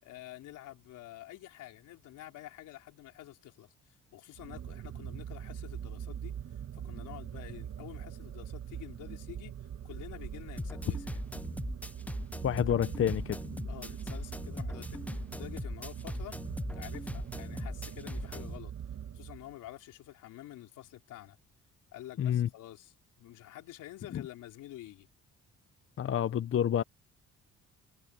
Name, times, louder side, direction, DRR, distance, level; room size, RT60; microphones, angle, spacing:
voice 1, 0.0-6.4 6.7-9.5 9.8-11.2 13.7-16.4 16.7-18.7 19.1-21.4 21.9-25.1, left 14 dB, 90° left, 4.1 m, -49 dB
sound 1, 4.3-19.7, right 9 dB, 60° right, 2.1 m, -43 dB
sound 2, 10.6-18.6, left 1 dB, 5° left, 0.7 m, -39 dB
voice 2, 12.4-13.4 22.2-22.5 24.1-24.2 26.0-26.8, left 10 dB, 45° left, 0.7 m, -28 dB
cardioid pair, 90°, 30 cm